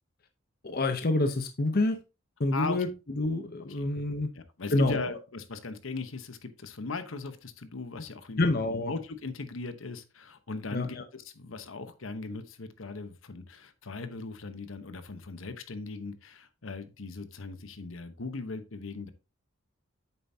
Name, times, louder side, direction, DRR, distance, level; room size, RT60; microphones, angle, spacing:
voice 1, 0.6-2.0 2.4-2.9 3.1-4.3 4.7-5.1 8.4-8.9 10.7-11.0, left 2 dB, 45° left, 0.7 m, -27 dB
voice 2, 2.5-2.8 3.7-3.9 4.3-8.5 8.9-19.1, left 3 dB, 75° left, 1.0 m, -38 dB
8.7 x 7.0 x 2.7 m
head